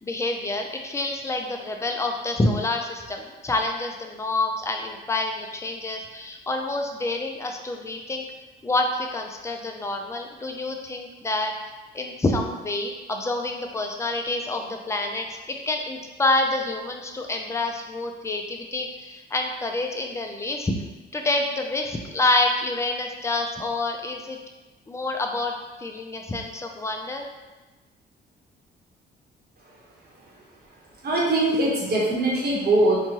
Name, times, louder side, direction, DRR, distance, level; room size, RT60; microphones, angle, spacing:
voice 1, 0.0-8.3 8.6-11.5 11.9-20.7 21.1-24.4 24.9-27.2, left 2 dB, 15° left, 3 dB, 0.3 m, -27 dB
voice 2, 31.0-33.1, right 2 dB, 50° right, -4 dB, 1.0 m, -22 dB
3.0 x 2.2 x 2.8 m, 1.2 s
cardioid pair, 90°, 20 cm